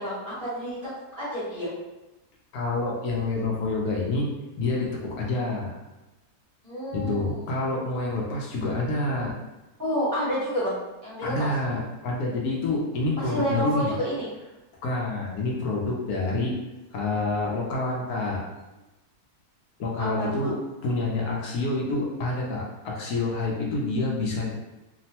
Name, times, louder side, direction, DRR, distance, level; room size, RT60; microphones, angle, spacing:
voice 1, 0.0-1.7 6.6-7.4 9.8-10.7 11.0-11.5 13.2-14.3 20.0-20.4, equal, 40° right, -10 dB, 1.1 m, -29 dB
voice 2, 2.5-4.3 4.6-5.8 6.9-9.3 11.2-13.9 14.8-16.6 16.9-18.4 19.8-20.6 20.8-24.5, left 2 dB, 75° left, -3 dB, 1.1 m, -27 dB
2.9 x 2.1 x 2.8 m, 1.0 s
omnidirectional pair, 1.7 m